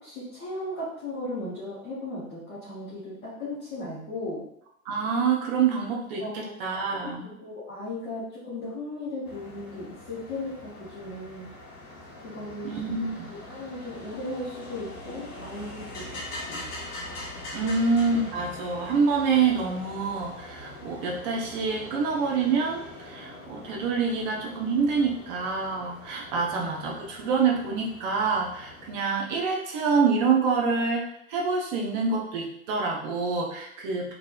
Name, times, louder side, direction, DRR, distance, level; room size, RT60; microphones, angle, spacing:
voice 1, 0.0-4.5 6.2-6.6 7.0-7.1 7.4-11.5 12.2-12.8 13.3-16.7 17.6-17.7 26.3-26.5, left 2 dB, 10° left, -12 dB, 0.3 m, -36 dB
voice 2, 4.9-7.3 12.6-13.3 17.5-34.1, right 5 dB, 30° right, -1 dB, 0.6 m, -26 dB
sound 1, 9.2-28.9, left 2 dB, 60° left, 1.0 m, -43 dB
3.1 x 2.6 x 2.2 m, 0.75 s
figure-of-eight pair, 100°, 44 cm